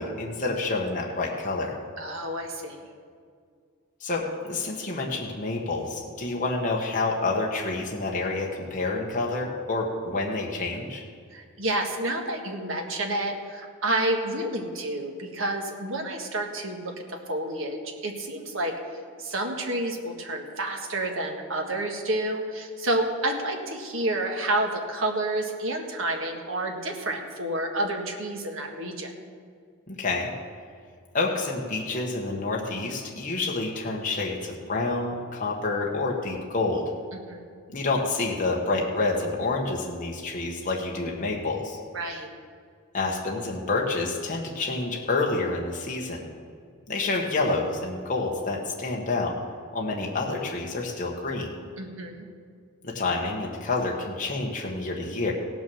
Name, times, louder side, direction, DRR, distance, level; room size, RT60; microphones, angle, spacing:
voice 1, 0.0-1.7 4.0-11.0 29.9-30.3 31.1-36.9 37.7-41.8 42.9-46.2 46.9-49.4 49.7-51.5 52.8-55.3, left 3 dB, 35° left, -2 dB, 1.3 m, -28 dB
voice 2, 2.0-2.8 11.3-18.7 19.2-29.1 37.1-37.5 41.9-42.3 51.8-52.3, right 1 dB, 60° right, 2 dB, 1.6 m, -29 dB
17.0 x 6.2 x 7.0 m, 2.1 s
head